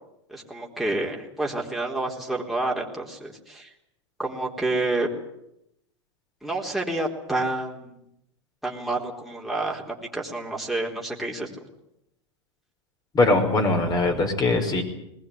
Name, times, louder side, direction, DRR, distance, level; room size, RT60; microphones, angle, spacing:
voice 1, 0.3-3.7 4.2-5.1 6.4-8.0 8.6-11.5, right 2 dB, ahead, -2 dB, 4.1 m, -29 dB
voice 2, 13.1-14.8, left 2 dB, 25° left, 4 dB, 5.5 m, -21 dB
21.0 x 19.5 x 9.6 m, 0.81 s
hypercardioid pair, 115°, 15 cm